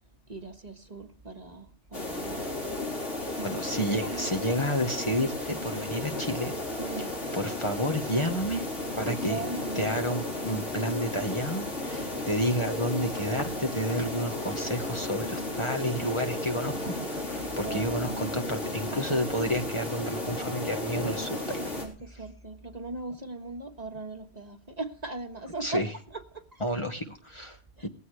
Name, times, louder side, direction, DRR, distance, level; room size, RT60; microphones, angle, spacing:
voice 1, 0.3-2.5 3.2-3.5 3.9-4.7 6.8-7.1 9.1-10.0 11.8-12.1 17.3-19.1 21.6-25.8 26.1-26.6 27.8-27.9, right 3 dB, 35° right, 5 dB, 1.6 m, -39 dB
sound 1, 1.9-21.8, left 2 dB, 90° left, 4.5 m, -34 dB
voice 2, 3.4-6.5 7.0-7.1 7.3-8.6 9.0-9.4 9.7-21.7 25.6-25.9 26.6-27.6 27.8-27.9, equal, 25° left, 3 dB, 1.4 m, -30 dB
19.0 x 15.5 x 3.3 m, 0.38 s
omnidirectional pair, 1.2 m